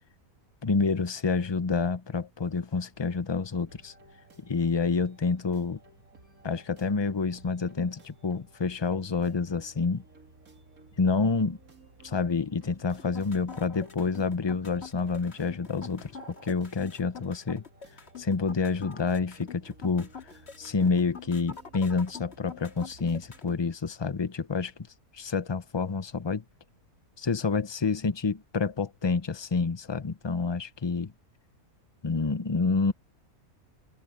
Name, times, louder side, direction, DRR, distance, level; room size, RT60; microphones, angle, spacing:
voice 1, 0.6-3.9 4.4-5.8 6.4-10.0 11.0-11.6 12.0-16.1 16.4-17.6 18.2-20.1 20.6-24.7 25.1-26.4 27.2-31.1 32.0-32.9, left 4 dB, 25° left, 0.6 m, -28 dB
sound 1, 3.7-23.4, right 2 dB, 75° right, 3.1 m, -56 dB
sound 2, 13.0-23.6, left 6 dB, 45° left, 2.2 m, -45 dB
omnidirectional pair, 1.5 m